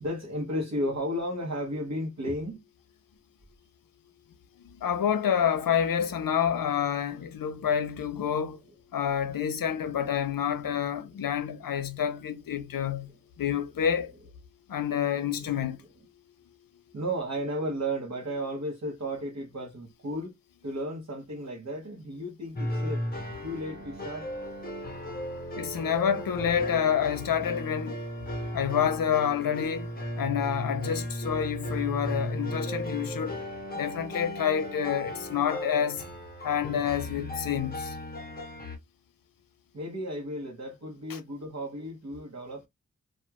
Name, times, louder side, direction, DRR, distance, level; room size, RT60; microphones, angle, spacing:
voice 1, 0.0-2.6 16.9-20.3 20.6-23.0 23.4-24.2 39.7-42.6, equal, 55° right, 0.9 m, -33 dB
voice 2, 4.8-8.6 8.9-13.1 13.4-14.1 14.7-15.8 25.6-28.0 28.5-29.9 30.2-33.4 33.7-36.0 36.4-38.0 41.1-41.2, left 8 dB, 90° left, 0.6 m, -28 dB
sound 1, 22.6-38.8, left 1 dB, 30° left, 0.7 m, -36 dB
2.3 x 2.3 x 2.9 m
wide cardioid pair, 105°, 33 cm